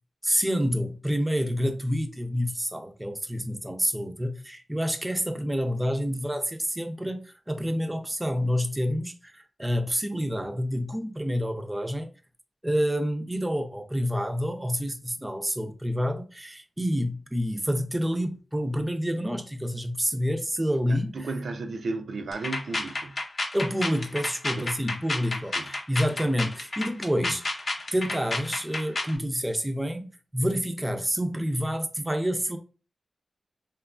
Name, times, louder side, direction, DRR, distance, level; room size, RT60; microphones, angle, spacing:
voice 1, 0.2-12.1 12.6-21.1 23.5-27.6 27.9-32.6, equal, 15° right, 0.4 m, -28 dB
voice 2, 20.9-23.2 24.6-24.7 25.5-25.7, right 3 dB, 75° right, 0.3 m, -34 dB
sound 1, 22.3-29.2, left 2 dB, 50° left, 0.6 m, -31 dB
2.9 x 2.2 x 2.4 m
wide cardioid pair, 75°, 0 cm